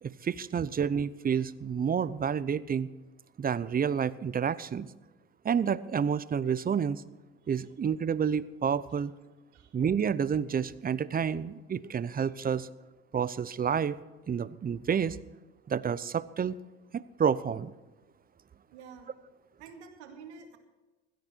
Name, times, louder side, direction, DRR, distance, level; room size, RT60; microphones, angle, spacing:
voice 1, 0.0-2.9 3.4-4.9 5.4-7.0 7.5-9.1 9.7-12.7 13.1-14.0 14.3-15.2 15.7-16.5 16.9-17.7, right 7 dB, 25° right, 18 dB, 0.7 m, -29 dB
voice 2, 18.7-19.1 19.6-20.6, right 5 dB, 85° right, 4 dB, 2.3 m, -48 dB
16.5 x 13.5 x 4.5 m, 1.2 s
hypercardioid pair, 75°, 33 cm